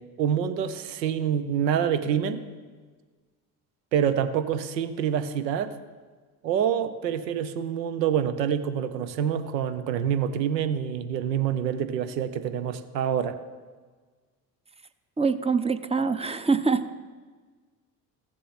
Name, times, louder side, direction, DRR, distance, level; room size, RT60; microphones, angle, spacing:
voice 1, 0.0-2.4 3.9-5.8 6.4-13.4, right 8 dB, 85° right, 11 dB, 0.7 m, -26 dB
voice 2, 15.2-16.8, right 4 dB, 15° right, 11 dB, 0.6 m, -24 dB
15.0 x 7.5 x 4.1 m, 1.4 s
hypercardioid pair, 60°, 48 cm